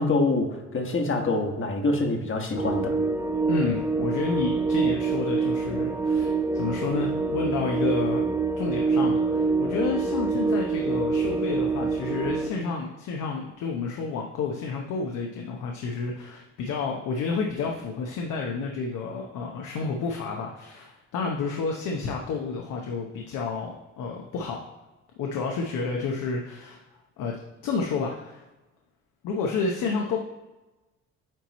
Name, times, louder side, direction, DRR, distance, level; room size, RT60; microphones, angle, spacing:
voice 1, 0.0-2.9, left 2 dB, 40° left, 4 dB, 1.3 m, -25 dB
sound 1, 2.5-12.5, right 4 dB, 10° right, 0.6 m, -26 dB
voice 2, 3.5-8.2 8.6-24.6 25.2-26.8 27.2-27.4 27.6-28.5 29.2-30.2, left 4 dB, 80° left, 1 dB, 0.8 m, -30 dB
9.0 x 3.0 x 4.0 m, 1.1 s
cardioid pair, 90°, 30 cm